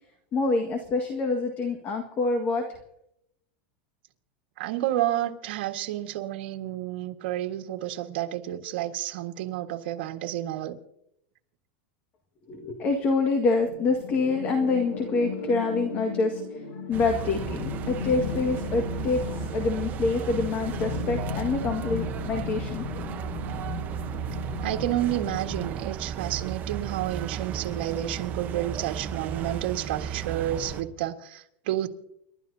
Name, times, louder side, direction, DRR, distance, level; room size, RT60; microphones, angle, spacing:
voice 1, 0.3-2.6 12.5-16.4 16.7-22.9, left 3 dB, 30° left, 1.8 m, -26 dB
voice 2, 4.6-10.8 24.6-31.9, right 13 dB, 70° right, 1.7 m, -30 dB
sound 1, 13.7-25.7, left 5 dB, 85° left, 6.5 m, -36 dB
sound 2, 16.9-30.8, right 8 dB, 30° right, 1.0 m, -34 dB
30.0 x 12.5 x 2.8 m
supercardioid pair, 145°, 6 cm